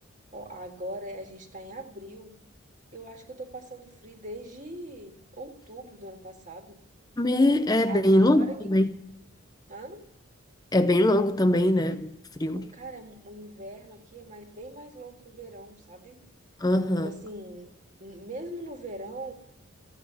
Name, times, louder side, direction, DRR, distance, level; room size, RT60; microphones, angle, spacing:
voice 1, 0.3-2.4 2.9-6.8 7.9-8.6 9.7-10.0 12.5-16.2 17.0-17.7 18.0-19.3, right 1 dB, 35° right, 1.9 m, -41 dB
voice 2, 7.2-8.9 10.7-12.7 16.6-17.1, left 1 dB, 20° left, 0.6 m, -22 dB
15.5 x 9.7 x 6.9 m
head